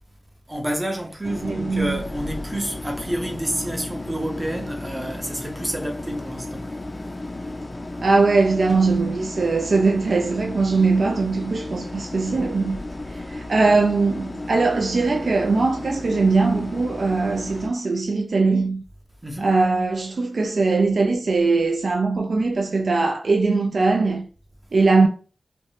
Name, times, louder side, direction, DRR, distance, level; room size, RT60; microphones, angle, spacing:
voice 1, 0.5-6.7 19.2-19.5, right 1 dB, 20° right, 0.6 m, -29 dB
sound 1, 1.2-17.7, left 2 dB, 40° left, 0.4 m, -34 dB
voice 2, 1.4-2.0 8.0-12.8 13.1-18.8 19.4-24.3 24.7-25.1, right 3 dB, 75° right, 0.3 m, -20 dB
2.5 x 2.1 x 3.0 m
wide cardioid pair, 55°, 0 cm